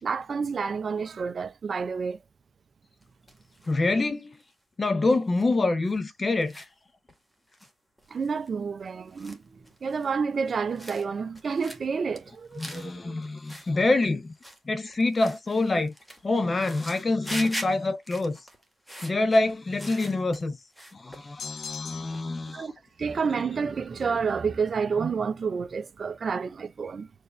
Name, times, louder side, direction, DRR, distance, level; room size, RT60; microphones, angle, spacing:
voice 1, 0.0-2.2 8.1-13.2 22.5-22.7 23.0-27.1, right 5 dB, 40° right, 0.5 m, -29 dB
sound 1, 3.0-3.7 4.1-4.5 5.0-5.5 5.8-6.0 6.3-6.7 7.1-7.2 7.5-7.7 8.0-8.5 8.8-10.1 10.4-11.1 11.4-11.8 12.2-13.0 13.2-13.7 14.0-14.6 14.9-20.5 20.7-21.8 22.1-22.5, equal, 5° left, 1.3 m, -42 dB
voice 2, 3.7-4.4 4.8-6.7 12.6-14.3 14.7-15.9 16.2-18.4 19.0-20.6 20.9-22.7, left 2 dB, 25° left, 0.6 m, -26 dB
sound 2, 21.4-22.4, left 7 dB, 65° left, 0.7 m, -39 dB
4.7 x 2.4 x 3.1 m
cardioid pair, 90°, 0 cm